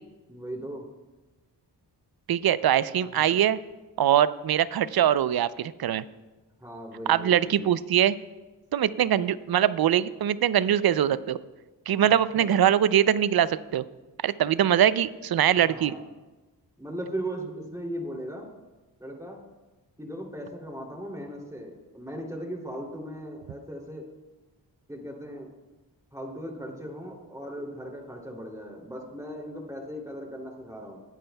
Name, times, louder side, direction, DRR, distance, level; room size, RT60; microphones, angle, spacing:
voice 1, 0.3-0.8 3.0-3.4 6.6-7.7 12.0-12.5 15.6-16.0 16.8-18.5 19.0-19.4 20.0-24.1 24.9-25.5 26.1-31.0, equal, 5° right, 1 dB, 2.8 m, -38 dB
voice 2, 2.3-3.6 4.0-6.0 7.1-8.2 8.7-11.4 11.9-13.8 14.2-15.9, right 10 dB, 60° right, 16 dB, 0.5 m, -22 dB
19.0 x 9.1 x 2.3 m, 1.2 s
cardioid pair, 45°, 43 cm